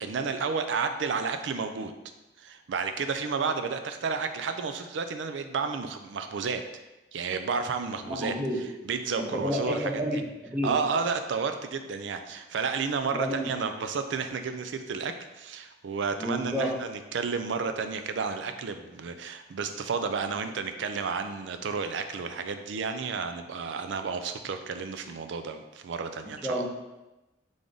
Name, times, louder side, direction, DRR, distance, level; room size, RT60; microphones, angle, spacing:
voice 1, 0.0-1.9 2.4-6.6 7.1-8.3 8.8-10.0 10.6-26.6, right 5 dB, 80° right, 8 dB, 0.4 m, -31 dB
voice 2, 8.1-8.6 9.2-10.7 13.1-13.5 16.2-16.7 26.4-26.7, equal, 10° right, -2 dB, 0.6 m, -30 dB
3.7 x 3.4 x 3.8 m, 1.0 s
head